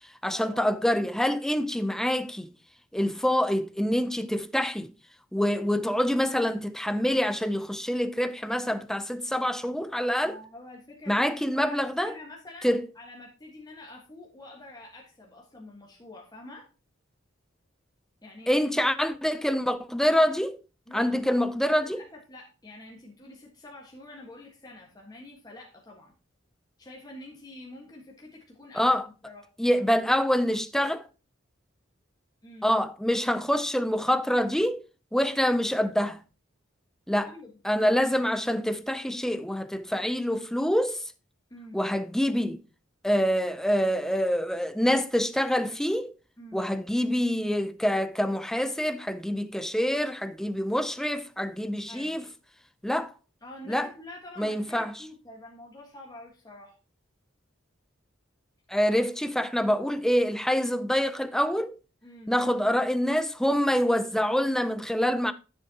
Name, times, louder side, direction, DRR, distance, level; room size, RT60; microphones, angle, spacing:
voice 1, 0.2-2.5 2.9-4.9 5.3-10.4 11.1-12.1 12.6-12.9 18.5-20.6 20.9-22.0 28.7-29.1 29.6-31.0 32.6-34.8 35.1-36.2 37.1-37.3 37.6-41.0 41.7-42.6 43.0-46.1 46.5-52.2 52.8-53.1 53.7-53.9 54.4-54.9 58.7-61.7 62.3-65.3, equal, ahead, 0.4 m, -26 dB
voice 2, 10.2-16.7 18.2-18.6 20.9-21.5 21.8-26.1 26.8-29.5 32.4-32.7 37.2-37.5 41.5-41.8 46.4-46.6 51.9-52.2 53.4-56.7 62.0-62.4, left 1 dB, 20° left, 1.5 m, -47 dB
10.5 x 7.1 x 2.8 m
head